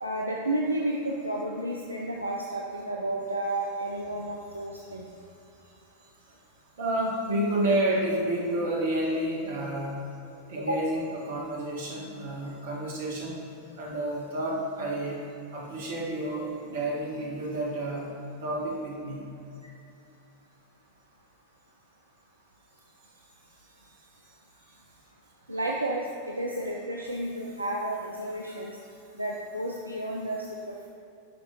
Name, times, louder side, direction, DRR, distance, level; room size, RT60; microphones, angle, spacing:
voice 1, 0.0-5.1 10.6-10.7 25.5-26.1 26.4-28.8 29.1-30.9, right 1 dB, 85° right, -2 dB, 0.4 m, -31 dB
voice 2, 6.8-9.9 10.5-13.4 13.8-15.2 15.5-18.1 18.4-19.3, right 1 dB, 55° right, -3 dB, 1.4 m, -30 dB
9.2 x 4.8 x 2.9 m, 2.7 s
figure-of-eight pair, 90°, 0 cm